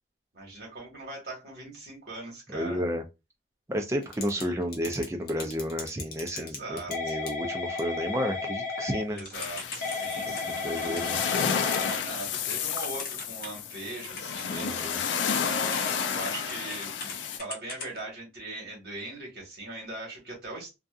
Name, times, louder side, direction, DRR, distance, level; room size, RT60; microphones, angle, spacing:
voice 1, 0.3-2.8 4.3-4.6 6.3-7.2 9.1-20.8, right 2 dB, 55° right, 1.4 m, -41 dB
voice 2, 2.5-3.0 3.7-9.2 10.3-11.2 14.5-15.0, equal, 15° right, 0.4 m, -32 dB
Typing / Telephone, 4.0-4.4 4.7-13.7 14.0-17.1 17.4-18.0, left 4 dB, 50° left, 0.7 m, -35 dB
sound 1, 9.3-17.4, left 7 dB, 80° left, 0.4 m, -31 dB
2.7 x 2.3 x 2.4 m
head